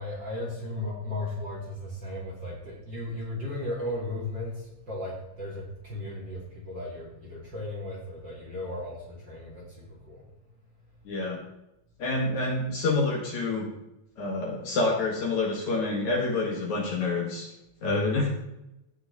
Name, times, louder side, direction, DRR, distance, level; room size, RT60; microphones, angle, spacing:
voice 1, 0.0-10.3 11.0-11.1 17.8-18.2, left 1 dB, 35° right, -4 dB, 2.7 m, -36 dB
voice 2, 11.1-11.4 12.0-13.7 14.2-17.5 17.8-18.3, left 3 dB, 55° left, -1 dB, 2.7 m, -27 dB
17.0 x 6.2 x 4.0 m, 0.89 s
omnidirectional pair, 4.5 m